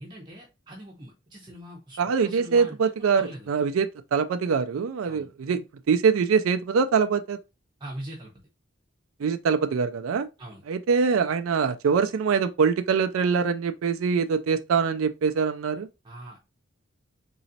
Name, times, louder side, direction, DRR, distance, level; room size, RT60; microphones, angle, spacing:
voice 1, 0.0-3.5 5.1-5.3 7.8-8.3 10.4-10.6 16.0-16.4, right 1 dB, 20° right, 0.7 m, -42 dB
voice 2, 2.0-7.4 9.2-10.3 10.7-15.9, right 5 dB, 85° right, 0.4 m, -24 dB
3.9 x 3.1 x 2.7 m
head